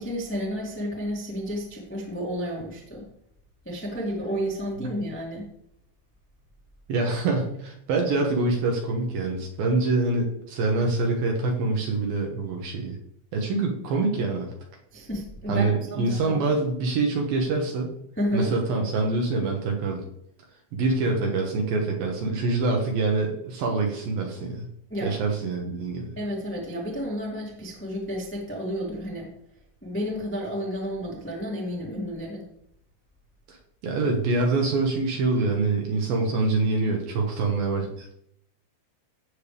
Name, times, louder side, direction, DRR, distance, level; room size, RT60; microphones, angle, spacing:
voice 1, 0.0-3.1 3.6-5.5 14.9-16.4 18.1-18.5 24.9-25.2 26.1-29.3 29.8-32.5, equal, 5° left, -4 dB, 0.9 m, -31 dB
voice 2, 6.9-13.0 13.3-14.5 15.5-17.9 18.3-20.0 20.7-24.7 25.0-26.1 33.5-38.1, right 3 dB, 65° right, 1 dB, 2.5 m, -25 dB
17.0 x 6.6 x 3.4 m, 0.74 s
omnidirectional pair, 5.2 m